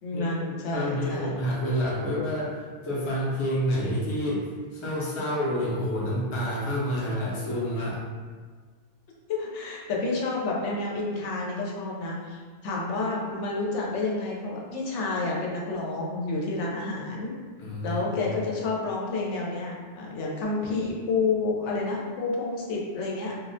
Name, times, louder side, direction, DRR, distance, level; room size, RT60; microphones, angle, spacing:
voice 1, 0.0-1.3 9.3-17.3 17.8-23.4, left 3 dB, 90° left, -3 dB, 0.9 m, -29 dB
voice 2, 0.7-8.0 17.6-18.3, equal, 40° left, -6 dB, 0.5 m, -29 dB
2.3 x 2.1 x 2.5 m, 1.5 s
omnidirectional pair, 1.2 m